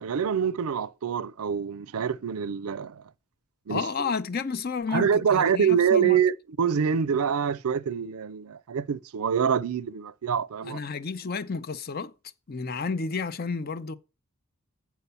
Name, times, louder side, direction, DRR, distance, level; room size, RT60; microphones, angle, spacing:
voice 1, 0.0-3.0 3.7-3.8 4.9-10.8, right 7 dB, 80° right, 0.5 m, -25 dB
voice 2, 3.7-6.2 10.6-12.1 12.5-13.9, left 5 dB, 45° left, 0.6 m, -31 dB
8.1 x 4.6 x 6.9 m
head